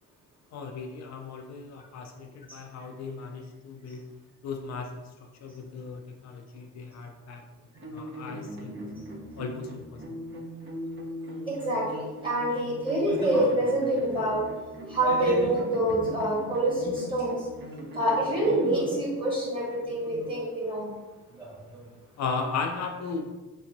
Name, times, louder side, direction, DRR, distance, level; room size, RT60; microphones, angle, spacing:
voice 1, 0.5-4.0 4.4-5.1 5.4-7.4 7.9-8.8 9.4-10.0 22.2-23.3, left 4 dB, 60° left, 3 dB, 0.5 m, -36 dB
sound 1, 7.7-18.7, equal, 40° right, 0.8 m, -40 dB
voice 2, 11.5-14.4 14.9-17.4 17.9-20.9 21.4-21.5, right 1 dB, 15° right, -5 dB, 1.5 m, -26 dB
3.3 x 2.9 x 2.6 m, 1.2 s
cardioid pair, 90°, 30 cm